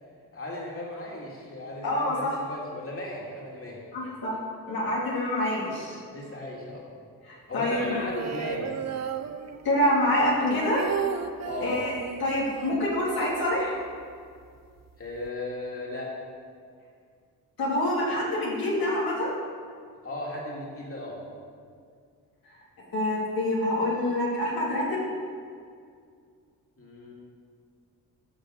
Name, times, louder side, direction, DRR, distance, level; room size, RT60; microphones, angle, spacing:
voice 1, 0.3-3.8 5.7-5.8 6.1-6.8 7.5-8.7 11.4-11.8 15.0-16.1 20.0-21.2 26.8-27.1, left 2 dB, 35° left, -4 dB, 3.1 m, -36 dB
voice 2, 1.8-2.4 3.9-4.4 4.7-6.0 7.2-7.8 9.6-10.9 11.6-11.9 12.2-13.8 17.6-19.3 22.9-25.1, left 1 dB, 75° left, -5 dB, 2.9 m, -26 dB
sound 1, 7.7-9.9 10.2-14.1 14.4-14.5 14.8-15.3, right 7 dB, 45° right, 0.7 m, -35 dB
12.5 x 5.2 x 6.8 m, 2.2 s
cardioid pair, 65°, 37 cm